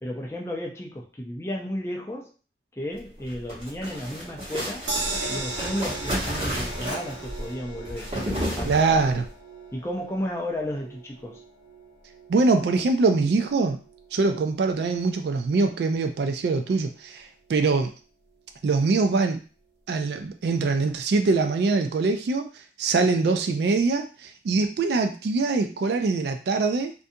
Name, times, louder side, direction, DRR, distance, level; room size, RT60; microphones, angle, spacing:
voice 1, 0.0-2.3 2.7-4.9 5.3-8.1 8.5-9.2 9.7-11.4, equal, 15° left, -1 dB, 0.4 m, -33 dB
sound 1, 3.2-9.2, equal, 30° right, 1.0 m, -32 dB
sound 2, 4.9-17.1 17.5-17.6 17.9-18.0, right 2 dB, 85° right, 0.8 m, -39 dB
voice 2, 8.6-9.2 12.3-13.8 14.1-17.9 18.6-19.4 19.9-26.9, right 3 dB, 70° right, 6 dB, 0.3 m, -23 dB
2.5 x 2.2 x 2.6 m, 0.35 s
head